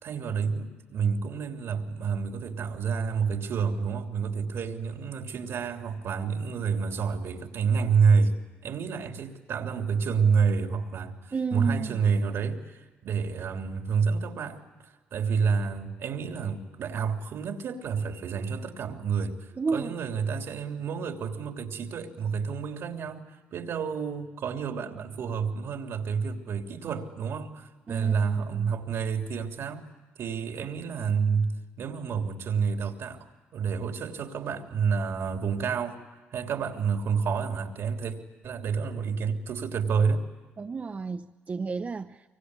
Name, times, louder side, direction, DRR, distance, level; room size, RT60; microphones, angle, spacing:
voice 1, 0.0-8.3 8.6-29.9 30.2-31.5 31.8-36.0 36.3-38.2 38.4-40.2, right 6 dB, 70° right, 3.3 m, -29 dB
voice 2, 11.3-12.0 19.6-19.9 27.9-28.7 40.6-42.2, right 4 dB, 35° right, 0.9 m, -32 dB
24.5 x 24.5 x 9.8 m
supercardioid pair, 70°, 4 cm